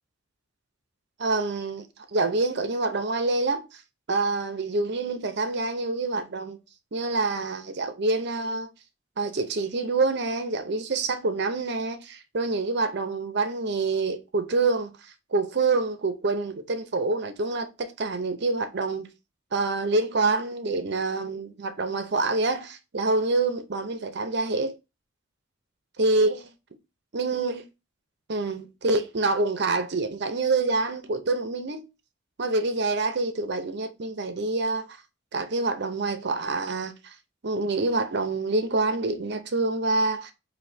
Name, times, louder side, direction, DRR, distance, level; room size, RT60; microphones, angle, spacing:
voice 1, 1.2-3.6 4.1-6.6 6.9-8.7 9.2-14.9 15.3-19.1 19.5-24.7 26.0-26.4 27.1-27.6 28.3-31.8 32.4-35.0 35.3-36.9 37.4-40.3, right 3 dB, 55° right, 0.6 m, -26 dB
4.2 x 2.6 x 3.2 m
head